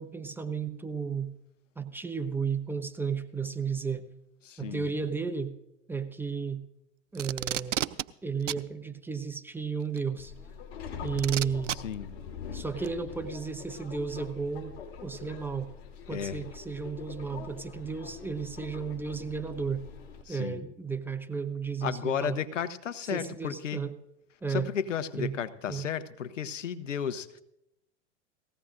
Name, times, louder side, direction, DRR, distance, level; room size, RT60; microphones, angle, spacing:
voice 1, 0.0-1.3 1.8-4.1 4.6-5.5 5.9-6.6 7.1-7.8 8.2-10.3 11.0-11.8 12.5-15.7 16.1-19.8 20.3-22.4 23.0-23.9 24.4-24.7 25.1-25.4 25.7-25.9, right 5 dB, 5° right, 8 dB, 0.7 m, -33 dB
voice 2, 4.4-4.9 11.8-12.1 16.1-16.4 20.3-20.6 21.8-23.8 24.5-27.4, left 8 dB, 80° left, 13 dB, 0.9 m, -33 dB
Packing tape duct tape, 7.1-8.0 8.5-8.6 10.0-10.1 11.2-11.8 12.8-12.9, right 11 dB, 80° right, 0.6 m, -31 dB
Subway metro underground, 10.2-20.2, left 7 dB, 55° left, 2.9 m, -44 dB
19.0 x 16.0 x 2.5 m, 0.84 s
hypercardioid pair, 100°, 36 cm